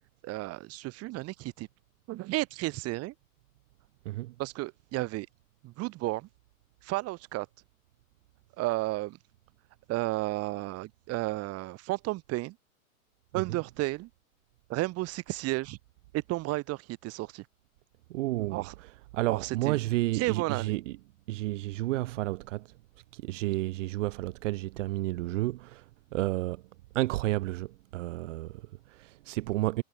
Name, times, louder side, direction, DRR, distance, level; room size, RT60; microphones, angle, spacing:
voice 1, 0.2-1.7 2.1-3.1 4.4-5.3 5.6-6.3 6.8-7.5 8.6-9.2 9.9-12.6 13.3-14.1 14.7-15.8 16.1-17.5 18.5-18.7 19.3-19.8 20.1-20.8, right 19 dB, 35° right, 4.1 m, -32 dB
voice 2, 18.1-18.6 19.1-21.0 21.3-22.7 23.1-26.6 26.9-29.8, right 18 dB, 60° right, 1.7 m, -31 dB
supercardioid pair, 145°, 42 cm